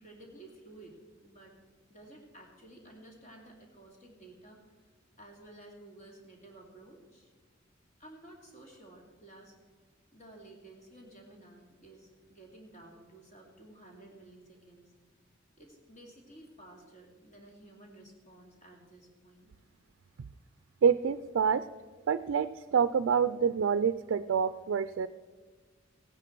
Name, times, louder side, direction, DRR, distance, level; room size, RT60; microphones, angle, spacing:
voice 1, 0.0-1.5 1.9-4.6 5.2-7.3 8.0-9.5 10.1-14.9 15.6-19.5, right 1 dB, 40° left, 0 dB, 2.6 m, -53 dB
voice 2, 20.8-21.6 22.1-25.1, right 6 dB, 80° right, 12 dB, 0.4 m, -27 dB
16.0 x 9.9 x 4.6 m, 1.5 s
head